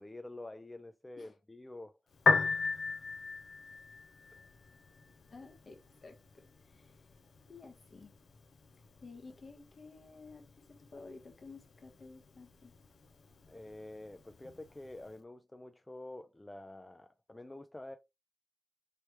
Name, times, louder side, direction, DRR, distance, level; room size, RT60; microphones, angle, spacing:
voice 1, 0.0-2.0 2.3-2.4 13.5-18.0, left 2 dB, 20° left, 0.3 m, -48 dB
Piano, 2.1-15.1, left 4 dB, 90° left, 0.4 m, -38 dB
voice 2, 5.3-7.0 7.5-8.1 8.8-12.7, left 3 dB, 55° left, 1.0 m, -53 dB
3.3 x 3.1 x 2.9 m
wide cardioid pair, 95°, 0 cm